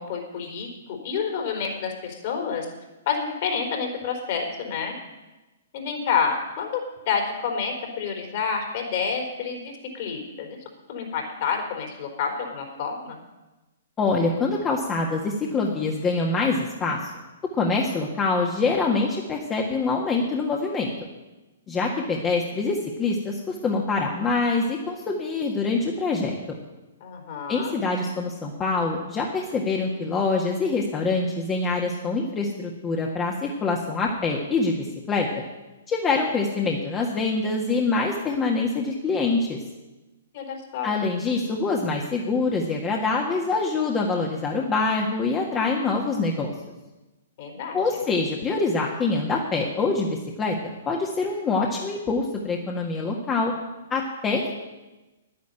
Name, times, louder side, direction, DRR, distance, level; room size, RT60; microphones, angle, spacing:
voice 1, 0.0-2.7 3.1-5.0 5.7-6.8 7.1-10.6 10.9-13.2 27.0-27.8 40.3-40.9 47.4-47.8, left 6 dB, 50° left, 2 dB, 4.0 m, -29 dB
voice 2, 14.0-17.0 17.5-20.9 21.7-26.6 27.5-35.3 35.9-39.6 40.8-46.5 47.7-53.5 53.9-54.5, left 3 dB, 20° left, -1 dB, 1.7 m, -25 dB
10.5 x 10.5 x 9.0 m, 1.1 s
hypercardioid pair, 125°, 0 cm